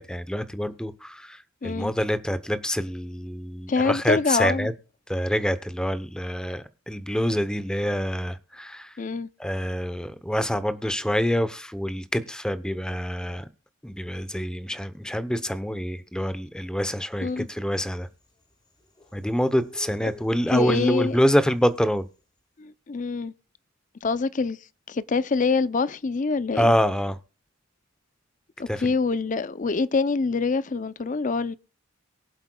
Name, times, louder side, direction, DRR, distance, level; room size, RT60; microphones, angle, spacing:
voice 1, 0.0-4.7 5.1-8.9 9.4-13.5 13.8-18.1 19.1-22.1 26.6-27.2 28.7-28.9, equal, 5° left, 0.7 m, -26 dB
voice 2, 1.6-1.9 3.7-4.7 9.0-9.3 17.2-17.5 20.0-20.1 20.5-21.2 22.6-23.3 24.0-24.6 24.9-26.7 28.6-31.6, left 4 dB, 40° left, 0.5 m, -25 dB
sound 1, 17.4-22.0, left 2 dB, 25° left, 4.3 m, -50 dB
23.0 x 7.9 x 2.3 m
head